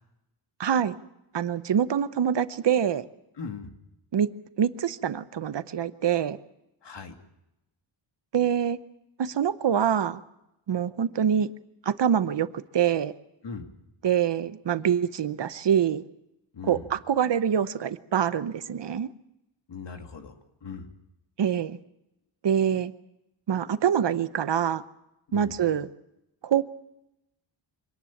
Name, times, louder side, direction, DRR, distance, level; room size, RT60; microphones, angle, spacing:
voice 1, 0.6-1.0 1.3-3.0 4.1-4.3 4.6-6.4 8.3-8.8 9.2-10.2 10.7-11.5 11.9-12.5 12.7-13.1 14.0-16.0 16.6-19.1 21.4-21.8 22.4-22.9 23.5-24.8 25.3-25.9 26.4-26.6, right 8 dB, 60° right, 13 dB, 0.9 m, -25 dB
voice 2, 3.4-3.7 6.8-7.1 13.4-13.7 16.5-16.9 19.7-20.3 20.6-20.9 25.3-25.5, left 5 dB, 60° left, 5 dB, 2.4 m, -39 dB
25.0 x 18.5 x 7.2 m, 0.88 s
wide cardioid pair, 170°, 48 cm